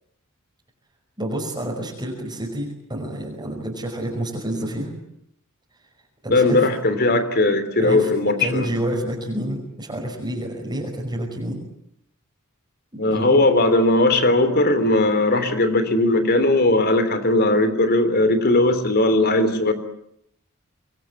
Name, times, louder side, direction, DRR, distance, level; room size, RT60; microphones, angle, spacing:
voice 1, 1.2-5.0 6.2-6.6 7.8-8.1 8.4-11.6 12.9-13.7, right 1 dB, 20° right, -2 dB, 5.5 m, -29 dB
voice 2, 6.3-8.7 13.0-19.7, left 2 dB, 50° left, 10 dB, 3.4 m, -18 dB
26.0 x 21.5 x 9.5 m, 0.74 s
head